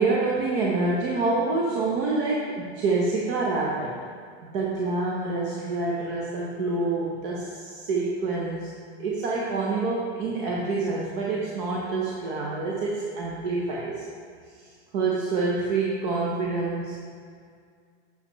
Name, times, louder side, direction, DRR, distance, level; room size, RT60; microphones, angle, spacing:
voice 1, 0.0-4.0 4.4-8.7 9.0-14.0 14.6-17.0, right 3 dB, 50° right, -4 dB, 1.0 m, -27 dB
7.2 x 6.6 x 3.1 m, 2.1 s
supercardioid pair, 165°, 35 cm